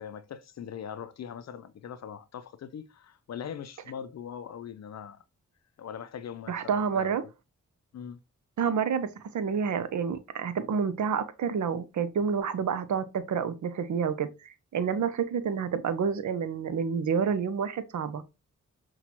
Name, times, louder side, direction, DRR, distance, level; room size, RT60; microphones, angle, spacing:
voice 1, 0.0-5.2 5.8-7.1 7.9-8.2, left 8 dB, 60° left, 0.4 m, -41 dB
voice 2, 6.5-7.2 8.6-18.2, right 6 dB, 70° right, 0.6 m, -29 dB
5.8 x 2.3 x 2.9 m
cardioid pair, 60°, 30 cm